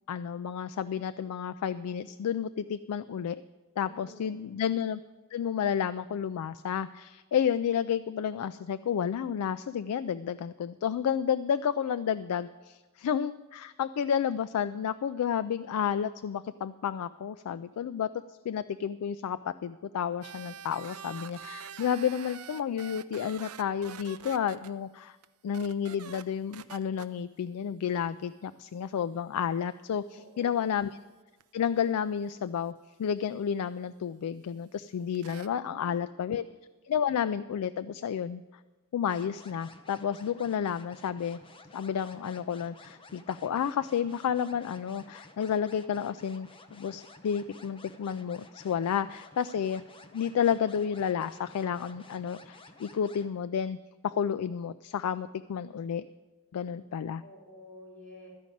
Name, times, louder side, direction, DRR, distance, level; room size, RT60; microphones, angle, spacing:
voice 1, 0.1-3.4 3.8-5.0 5.3-18.1 18.4-25.2 25.4-30.0 30.4-30.9 31.5-36.5 36.9-38.4 38.9-41.4 41.7-49.8 50.1-53.8 54.0-56.1 56.5-57.2, left 8 dB, 80° left, 13 dB, 0.3 m, -31 dB
voice 2, 3.8-4.6 30.1-30.7 57.2-58.3, left 1 dB, 5° left, -7 dB, 3.9 m, -51 dB
sound 1, 20.2-24.7 25.2-25.3 25.5-26.2 26.5-27.1 31.4-31.5 35.1-35.5, right 8 dB, 70° right, 0.5 m, -45 dB
sound 2, 39.1-53.3, left 2 dB, 25° left, 0.8 m, -53 dB
13.5 x 5.2 x 9.0 m, 1.2 s
head